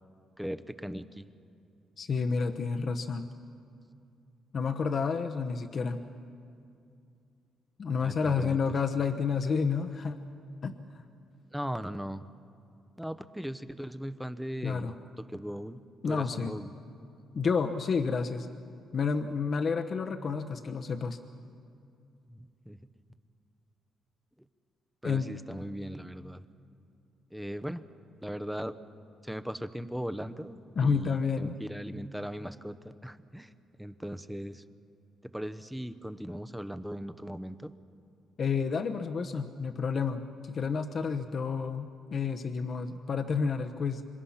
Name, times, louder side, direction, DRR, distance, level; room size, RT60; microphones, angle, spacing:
voice 1, 0.4-1.3 8.0-8.6 11.5-12.2 13.0-15.8 16.0-16.7 22.3-22.8 25.0-26.4 27.3-27.8 28.2-28.8 29.2-33.5 33.8-34.6 35.3-37.7, equal, 5° right, 12 dB, 1.0 m, -38 dB
voice 2, 2.0-3.3 4.5-6.0 7.8-10.2 10.6-11.0 14.6-14.9 16.0-16.5 17.3-18.5 18.9-21.2 25.0-25.3 30.8-31.5 38.4-44.0, left 5 dB, 50° left, 5 dB, 1.1 m, -30 dB
26.5 x 22.5 x 5.8 m, 2.5 s
cardioid pair, 90°, 0 cm